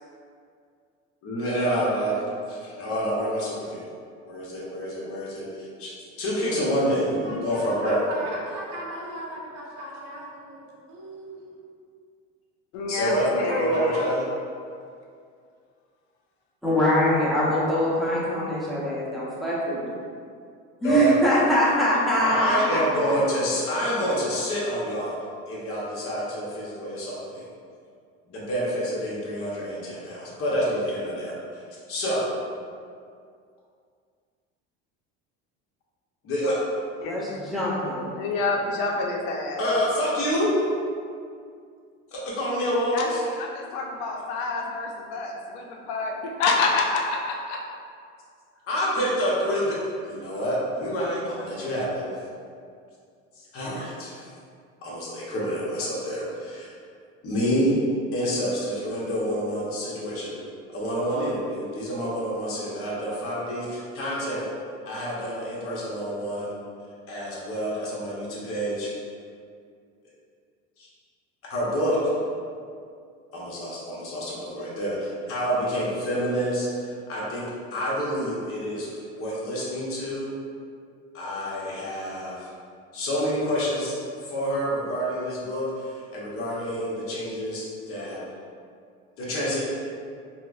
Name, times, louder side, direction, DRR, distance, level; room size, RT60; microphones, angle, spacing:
voice 1, 1.2-2.2 2.5-3.8 4.3-5.9 6.2-8.1 12.9-13.3 13.6-14.2 20.8-21.1 22.2-25.2 25.5-27.4 28.3-31.3 31.9-32.3 36.2-36.6 39.6-40.5 42.1-43.2 48.7-49.8 50.0-52.1 53.4-54.2 54.8-56.7 57.2-57.8 58.1-60.4 60.7-64.5 64.9-66.5 67.1-68.9 70.8-70.9 71.5-72.0 73.3-77.5 77.7-80.3 81.1-82.5 82.9-88.2 89.2-89.6, equal, 50° left, -6 dB, 1.0 m, -28 dB
voice 2, 7.2-11.5 13.5-14.1, right 1 dB, 70° right, -5 dB, 0.9 m, -37 dB
voice 3, 12.7-14.0 37.0-37.2 38.2-39.6 42.9-47.6, left 3 dB, 70° left, 0 dB, 0.5 m, -27 dB
voice 4, 16.6-19.9 20.8-22.8 23.1-23.2 37.0-38.1, equal, ahead, -8 dB, 0.8 m, -23 dB
4.1 x 2.0 x 2.4 m, 2.3 s
supercardioid pair, 115°, 30 cm